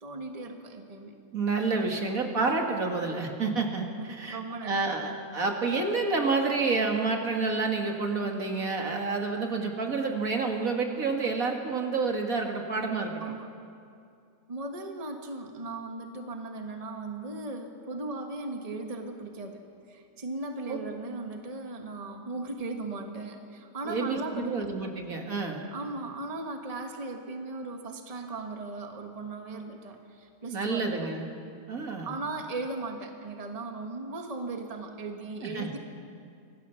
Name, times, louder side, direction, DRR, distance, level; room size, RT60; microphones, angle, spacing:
voice 1, 0.0-1.1 4.0-5.1 13.2-13.5 14.5-19.6 19.9-24.7 25.7-31.1 32.0-35.8, right 2 dB, 25° right, 3 dB, 1.5 m, -37 dB
voice 2, 1.3-13.1 20.7-20.8 23.8-25.7 30.5-31.3 31.7-32.2 35.4-35.7, right 4 dB, 65° right, 2 dB, 2.4 m, -29 dB
25.5 x 18.0 x 7.0 m, 2.4 s
omnidirectional pair, 1.6 m